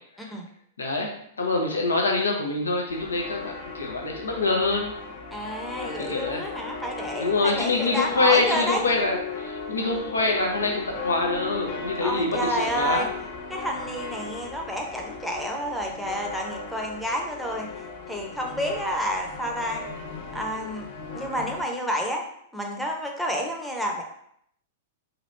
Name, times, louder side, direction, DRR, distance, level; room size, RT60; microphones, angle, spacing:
voice 1, 0.8-5.0 6.0-6.5 7.2-13.1, left 3 dB, 85° left, 0 dB, 0.7 m, -25 dB
sound 1, 2.9-21.6, left 4 dB, 50° left, 0.7 m, -37 dB
voice 2, 5.3-8.8 12.0-13.1 13.5-19.8 20.3-20.9 21.1-22.2 22.5-24.0, equal, ahead, 0 dB, 0.7 m, -30 dB
2.8 x 2.6 x 3.2 m, 0.70 s
hypercardioid pair, 105°, 0 cm